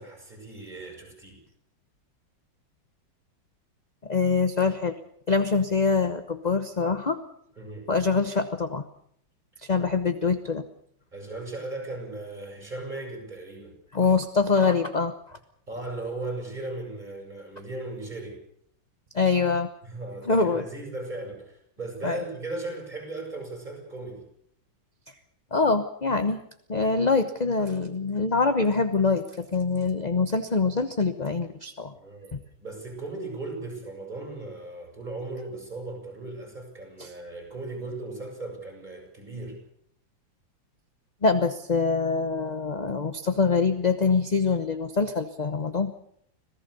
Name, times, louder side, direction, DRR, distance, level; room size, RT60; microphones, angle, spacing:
voice 1, 0.0-1.4 7.6-7.9 9.5-9.6 11.1-13.7 15.7-18.4 19.8-24.2 31.9-32.3 32.6-39.6, right 2 dB, 20° right, 2 dB, 8.0 m, -37 dB
voice 2, 4.0-4.9 5.3-7.2 7.9-8.8 9.6-10.6 13.9-15.4 19.1-19.7 20.2-20.6 22.0-22.2 25.5-26.4 26.7-31.9 32.3-32.4 37.0-37.1 41.2-45.9, left 4 dB, 30° left, 9 dB, 0.9 m, -24 dB
26.5 x 18.0 x 6.9 m, 0.68 s
omnidirectional pair, 2.1 m